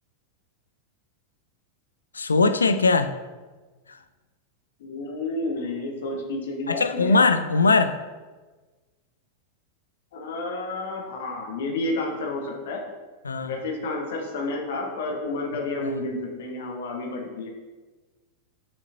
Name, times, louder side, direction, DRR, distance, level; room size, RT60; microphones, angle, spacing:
voice 1, 2.1-3.1 3.9-4.0 6.7-8.0 13.2-13.6 15.8-15.9, left 3 dB, 75° left, 10 dB, 0.3 m, -21 dB
voice 2, 4.8-7.2 10.1-12.8 13.5-17.5, left 2 dB, 55° left, 1 dB, 1.1 m, -30 dB
6.5 x 5.4 x 2.6 m, 1.3 s
figure-of-eight pair, 90°, 0 cm